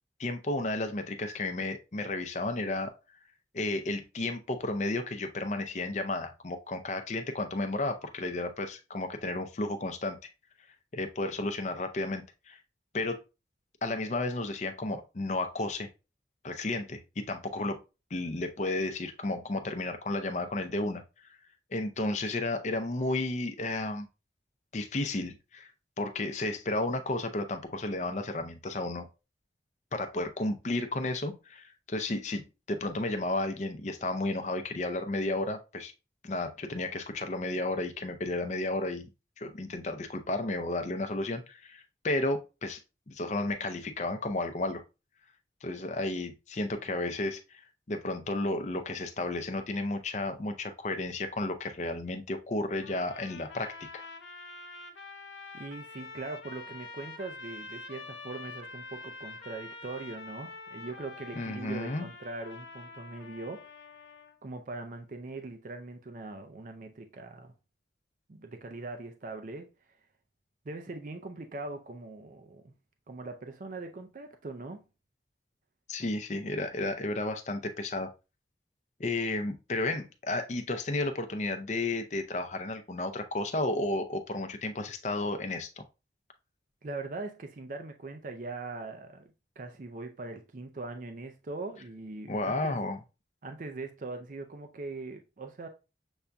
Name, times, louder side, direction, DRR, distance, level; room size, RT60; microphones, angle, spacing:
voice 1, 0.2-2.9 3.5-10.2 10.9-12.6 12.9-13.2 13.8-15.9 16.4-17.8 18.1-21.0 21.7-24.1 24.7-25.7 26.0-29.1 29.9-35.9 36.2-39.1 39.4-42.8 43.1-44.8 45.6-47.6 47.9-54.1 61.3-62.1 75.9-78.1 79.0-85.8 92.3-93.0, left 2 dB, 40° left, 0.5 m, -32 dB
sound 1, 52.8-64.4, left 3 dB, 85° left, 0.7 m, -46 dB
voice 2, 55.5-63.7 64.4-67.5 68.3-69.7 70.6-72.7 73.1-74.8 86.8-92.8 93.4-95.7, right 3 dB, 45° right, 0.4 m, -41 dB
6.9 x 2.6 x 2.2 m
head